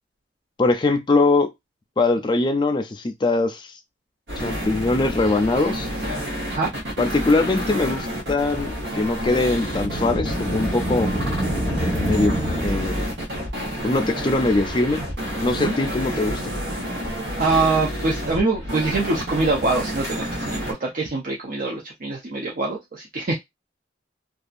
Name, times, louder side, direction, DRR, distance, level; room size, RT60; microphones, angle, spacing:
voice 1, 0.6-1.5 2.0-3.7 4.4-5.9 7.0-11.1 12.0-12.3 12.6-13.0 13.8-15.0 15.4-16.5, left 2 dB, 25° left, 0.4 m, -22 dB
sound 1, 4.3-20.7, equal, 80° right, 1.1 m, -29 dB
sound 2, 9.4-13.3, equal, 15° right, 1.1 m, -26 dB
voice 2, 17.4-23.4, right 3 dB, 50° right, 0.6 m, -24 dB
2.7 x 2.3 x 2.4 m
head